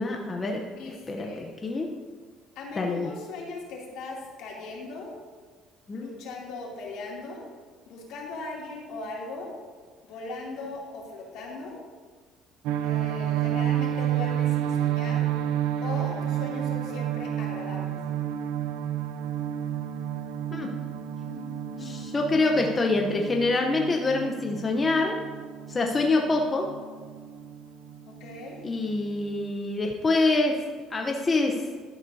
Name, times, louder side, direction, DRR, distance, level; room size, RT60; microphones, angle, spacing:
voice 1, 0.0-1.9 2.8-3.1 5.9-6.1 20.5-20.7 21.8-25.2 25.7-26.7 28.6-30.5 30.9-31.6, left 3 dB, 20° left, 1 dB, 0.8 m, -26 dB
voice 2, 0.8-1.5 2.5-5.2 5.9-7.4 7.9-9.5 10.0-11.8 12.8-15.3 15.8-18.0 21.2-22.0 28.1-28.6, left 3 dB, 75° left, -3 dB, 2.7 m, -39 dB
sound 1, 12.7-29.5, right 10 dB, 85° right, 0.5 m, -31 dB
11.5 x 11.5 x 2.7 m, 1.5 s
cardioid pair, 145°, 0 cm